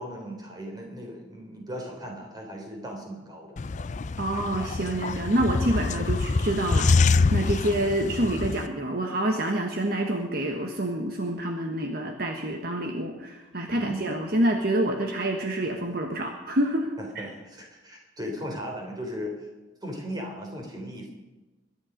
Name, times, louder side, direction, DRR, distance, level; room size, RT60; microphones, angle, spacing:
voice 1, 0.0-3.6 13.7-14.1 17.0-19.5 19.8-21.1, equal, 20° right, 1 dB, 3.6 m, -37 dB
sound 1, 3.6-8.7, left 4 dB, 40° left, 0.4 m, -25 dB
voice 2, 4.2-17.3, right 1 dB, 50° right, 3 dB, 1.4 m, -27 dB
21.5 x 11.0 x 5.2 m, 1.1 s
head